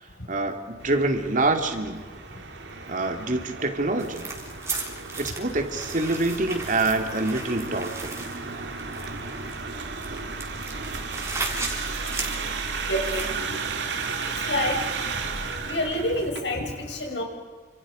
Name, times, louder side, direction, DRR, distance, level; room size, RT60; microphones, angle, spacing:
voice 1, 0.3-2.0 2.9-4.3 5.2-8.2, right 2 dB, 45° right, 6 dB, 2.5 m, -26 dB
sound 1, 0.8-16.4, right 4 dB, 80° right, 2.4 m, -34 dB
sound 2, 4.0-13.4, right 3 dB, 15° right, 3.7 m, -36 dB
voice 2, 12.9-13.4 14.4-14.8 15.7-17.2, left 1 dB, 80° left, 2 dB, 6.1 m, -27 dB
29.0 x 27.0 x 5.1 m, 1.4 s
head